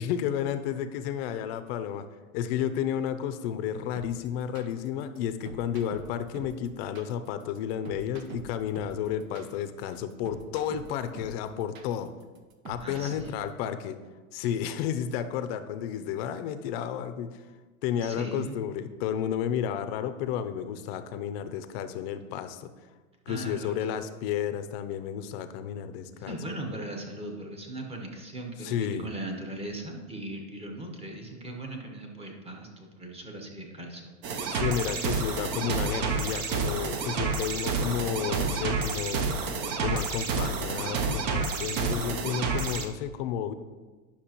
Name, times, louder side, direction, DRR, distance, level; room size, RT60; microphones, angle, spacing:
voice 1, 0.0-2.0 2.3-12.1 12.7-14.0 14.3-17.4 17.8-22.7 23.3-26.4 26.7-26.8 28.6-29.1 34.5-39.3 39.8-43.5, left 9 dB, 50° left, 10 dB, 0.6 m, -32 dB
sound 1, 4.0-13.5, right 4 dB, 70° right, 1.0 m, -45 dB
voice 2, 12.8-13.4 17.9-18.6 23.3-23.8 26.1-34.5, right 2 dB, 15° right, 1 dB, 1.2 m, -39 dB
sound 2, 34.2-42.8, right 4 dB, 45° right, 0.8 m, -29 dB
10.0 x 6.0 x 3.0 m, 1.3 s
hypercardioid pair, 125°, 41 cm